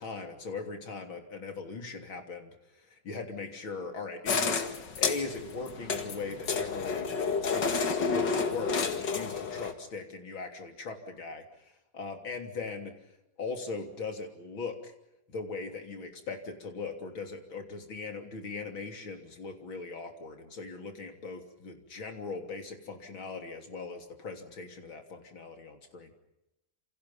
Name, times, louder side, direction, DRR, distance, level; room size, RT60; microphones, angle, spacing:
voice 1, 0.0-11.7 11.9-12.9 13.4-14.9 15.3-26.1, left 4 dB, 80° left, 5 dB, 3.9 m, -40 dB
sound 1, 4.3-9.7, left 5 dB, 60° left, 2.6 m, -30 dB
28.5 x 28.0 x 5.6 m, 0.87 s
omnidirectional pair, 2.2 m